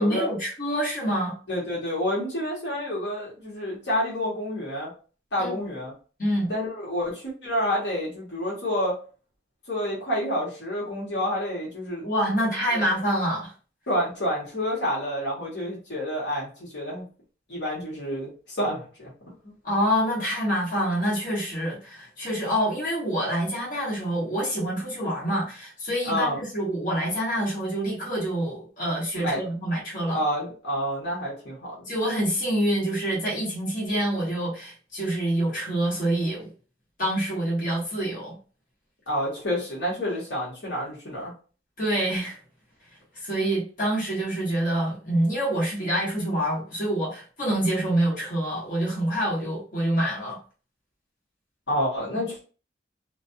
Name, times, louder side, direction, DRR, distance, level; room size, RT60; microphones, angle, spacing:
voice 1, 0.0-1.3 5.4-5.6 6.2-6.5 12.0-13.5 19.6-30.2 31.9-36.5 37.0-38.4 41.8-42.4 43.1-50.4 52.1-52.2, right 1 dB, 45° left, -6 dB, 1.3 m, -26 dB
voice 2, 1.5-4.9 5.3-5.9 6.5-9.0 9.7-12.1 12.7-12.8 13.9-17.0 17.5-19.1 19.4-19.5 26.0-26.4 29.2-29.4 30.1-31.9 39.1-41.3 51.7-52.4, equal, 80° left, -5 dB, 1.3 m, -28 dB
2.5 x 2.2 x 2.6 m, 0.37 s
head